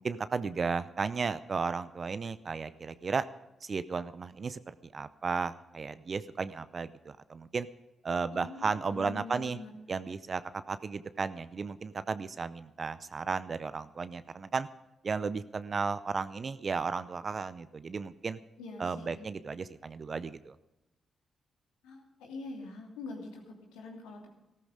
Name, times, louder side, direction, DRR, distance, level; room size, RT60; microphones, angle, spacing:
voice 1, 0.0-3.3 3.6-7.7 8.0-9.6 9.9-14.7 15.0-18.4 18.8-20.6, right 5 dB, 50° right, 14 dB, 0.6 m, -34 dB
voice 2, 8.3-9.7 18.6-19.3 21.8-24.3, left 3 dB, 85° left, 1 dB, 2.8 m, -44 dB
14.0 x 13.5 x 5.0 m, 0.97 s
hypercardioid pair, 45°, 0 cm